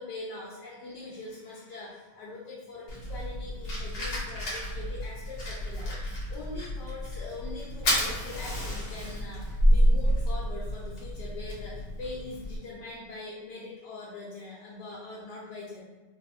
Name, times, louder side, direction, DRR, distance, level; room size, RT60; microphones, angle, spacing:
voice 1, 0.0-6.0 6.3-9.4 9.7-15.8, left 3 dB, 80° left, -5 dB, 1.2 m, -42 dB
Fire, 2.9-12.6, equal, 60° left, 1.3 m, -29 dB
3.4 x 2.4 x 2.5 m, 1.3 s
omnidirectional pair, 1.8 m